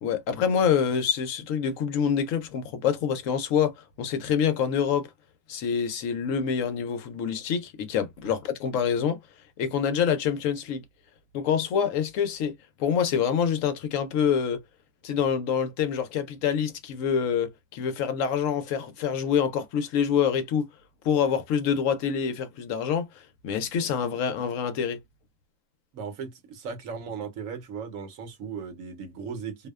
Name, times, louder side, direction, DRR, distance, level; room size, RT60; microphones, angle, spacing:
voice 1, 0.0-5.1 5.5-9.2 9.6-10.8 11.3-12.5 12.8-14.6 15.0-20.6 21.0-25.0, left 7 dB, 75° left, 1.0 m, -26 dB
voice 2, 25.9-29.7, right 6 dB, 75° right, 1.1 m, -37 dB
2.6 x 2.1 x 2.2 m
omnidirectional pair, 1.4 m